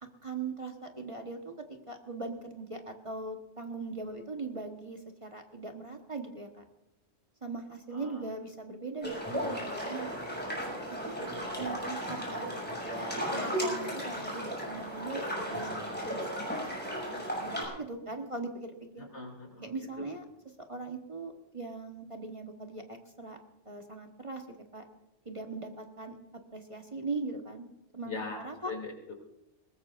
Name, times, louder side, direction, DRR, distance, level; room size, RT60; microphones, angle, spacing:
voice 1, 0.0-6.6 7.4-10.3 11.0-11.2 11.6-15.8 16.1-16.3 17.1-19.1 19.6-20.2 20.7-23.4 23.6-24.8 25.2-26.2 26.5-28.7, right 3 dB, 25° right, 3 dB, 1.3 m, -40 dB
voice 2, 7.9-8.3 11.1-11.5 19.0-19.7 20.0-20.1 28.0-29.1, left 3 dB, 70° left, 2 dB, 3.2 m, -41 dB
sound 1, 9.0-17.6, equal, 10° left, 6.4 m, -35 dB
21.5 x 19.0 x 2.5 m, 0.91 s
omnidirectional pair, 1.2 m